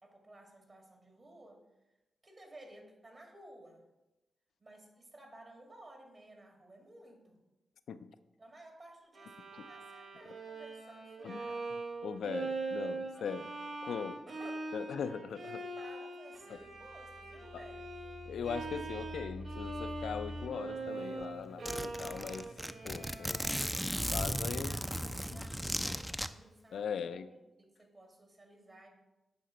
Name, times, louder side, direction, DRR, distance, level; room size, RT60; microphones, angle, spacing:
voice 1, 0.0-1.6 2.2-3.8 4.6-7.4 8.4-11.7 13.2-13.5 14.3-14.7 15.3-17.9 24.6-27.3 27.6-28.9, right 1 dB, 40° right, 2 dB, 2.0 m, -56 dB
Bowed string instrument, 9.1-25.2, right 3 dB, 65° right, 1.1 m, -43 dB
voice 2, 12.0-13.5 13.8-14.2 14.7-15.6 17.5-17.6 18.3-22.5 22.8-23.4 24.1-24.8 25.3-25.4 26.7-27.3, left 7 dB, 75° left, 12 dB, 0.4 m, -40 dB
sound 1, 16.3-25.8, equal, 20° right, 1.1 m, -49 dB
Zipper (clothing), 20.9-21.0 21.2-21.3 21.7-26.3, equal, 5° right, 0.4 m, -36 dB
10.5 x 4.3 x 3.9 m, 1.0 s
cardioid pair, 55°, 0 cm